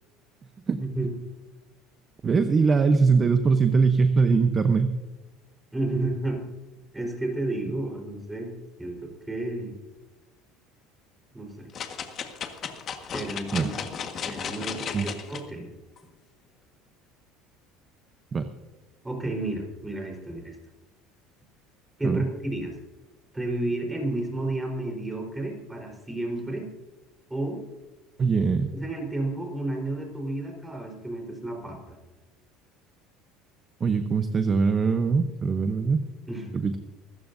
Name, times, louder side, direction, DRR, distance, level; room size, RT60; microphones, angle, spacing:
voice 1, 0.8-1.1 5.7-6.4 6.9-9.7 11.3-11.7 13.1-13.7 14.2-15.7 19.0-20.6 22.0-22.8 23.3-26.7 27.3-27.7 28.7-32.0 36.3-36.5, right 2 dB, 10° right, 1 dB, 4.2 m, -31 dB
voice 2, 2.2-4.9 13.5-13.7 14.9-15.1 18.3-18.5 22.0-22.2 28.2-28.7 33.8-36.0 36.5-36.8, right 5 dB, 25° right, 8 dB, 0.8 m, -22 dB
sound 1, 11.7-15.4 16.0-16.1, left 7 dB, 40° left, 1.6 m, -35 dB
25.0 x 14.0 x 2.7 m, 1.1 s
cardioid pair, 135°, 0 cm